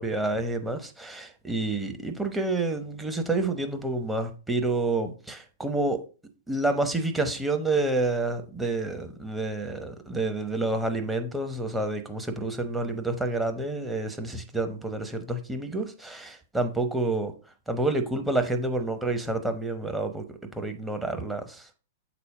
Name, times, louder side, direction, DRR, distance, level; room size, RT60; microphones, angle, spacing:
voice 1, 0.0-6.0 6.5-17.3 17.7-21.7, right 2 dB, 5° right, 0.9 m, -29 dB
7.0 x 4.2 x 4.8 m
figure-of-eight pair, 105°, 0 cm